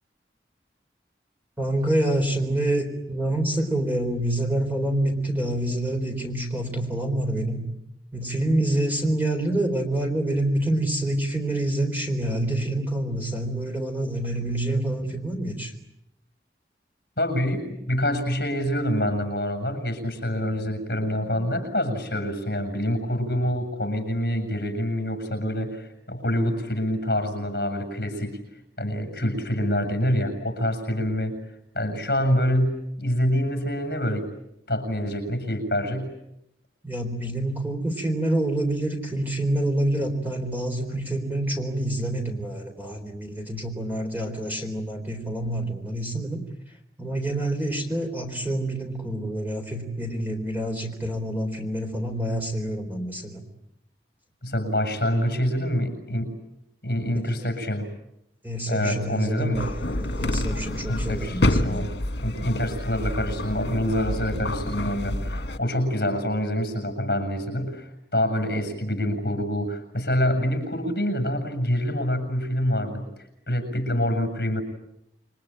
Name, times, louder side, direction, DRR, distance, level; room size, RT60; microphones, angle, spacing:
voice 1, 1.6-7.6 8.1-15.7 36.8-46.4 47.0-53.4 58.4-61.9, right 1 dB, 10° right, 3 dB, 3.9 m, -27 dB
voice 2, 17.2-28.4 28.8-31.4 31.8-34.3 34.7-36.1 54.4-56.4 56.8-57.9 58.7-59.7 60.9-61.9 62.2-73.1 73.5-74.6, equal, 55° left, 6 dB, 7.1 m, -26 dB
sound 1, 59.5-65.6, left 1 dB, 80° left, 1.9 m, -28 dB
28.5 x 23.5 x 8.9 m, 0.82 s
head